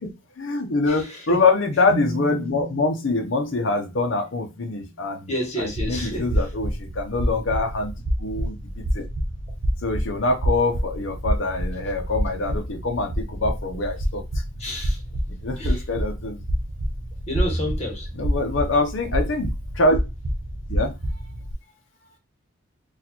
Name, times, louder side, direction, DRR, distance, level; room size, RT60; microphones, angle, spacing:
voice 1, 0.0-5.3 5.6-9.0 9.8-14.2 15.3-16.4 18.1-20.0 20.7-20.9, left 3 dB, 75° left, 0.7 m, -24 dB
voice 2, 0.9-1.4 5.3-6.3 14.6-15.0 15.6-15.8 17.3-18.1, equal, 35° left, 1.2 m, -30 dB
sound 1, 1.9-5.4, right 1 dB, 40° right, 1.2 m, -37 dB
sound 2, 5.6-21.5, equal, 70° right, 0.7 m, -28 dB
4.1 x 2.4 x 2.9 m
head